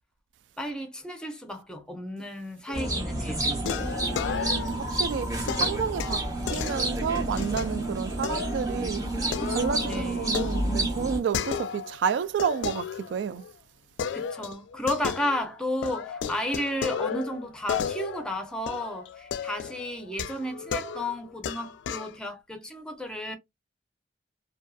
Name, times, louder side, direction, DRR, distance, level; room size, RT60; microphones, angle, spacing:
voice 1, 0.6-3.5 9.8-10.4 14.1-23.4, left 1 dB, 5° left, 0.6 m, -33 dB
sound 1, 2.7-3.1 3.6-4.9 5.5-7.7 8.2-8.7 9.0-12.0 12.4-13.5 14.0-15.5 15.8-22.2, left 7 dB, 90° left, 0.3 m, -34 dB
sound 2, 2.7-11.2, right 1 dB, 20° right, 0.9 m, -29 dB
voice 2, 4.2-9.1 9.5-13.4, right 7 dB, 90° right, 0.3 m, -30 dB
2.6 x 2.3 x 2.2 m
head